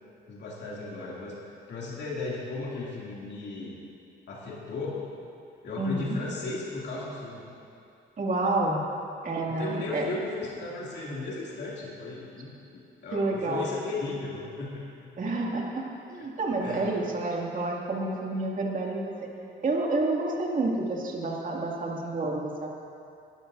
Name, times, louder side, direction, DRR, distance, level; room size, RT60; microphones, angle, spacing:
voice 1, 0.3-1.3 1.7-3.8 4.3-5.1 5.6-7.5 9.5-15.1 16.6-16.9, left 3 dB, 60° left, -6 dB, 2.6 m, -36 dB
voice 2, 5.8-6.2 8.2-8.8 9.2-10.1 13.1-13.7 15.2-19.3 19.6-22.7, right 2 dB, 40° right, -2 dB, 2.3 m, -29 dB
21.5 x 12.0 x 2.7 m, 2.6 s
cardioid pair, 90°, 20 cm